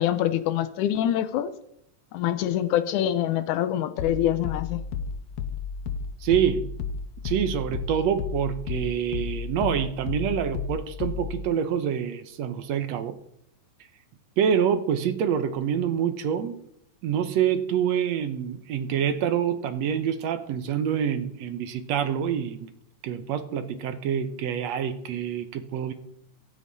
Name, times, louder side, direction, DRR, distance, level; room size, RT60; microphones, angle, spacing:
voice 1, 0.0-1.5 2.1-4.8, left 11 dB, 85° left, 2.3 m, -25 dB
sound 1, 4.0-11.5, left 6 dB, 70° left, 1.8 m, -33 dB
voice 2, 6.2-6.7 7.2-13.2 14.4-16.5 17.0-22.7 23.0-25.9, right 8 dB, 70° right, 2.0 m, -26 dB
23.5 x 8.6 x 4.1 m
omnidirectional pair, 3.4 m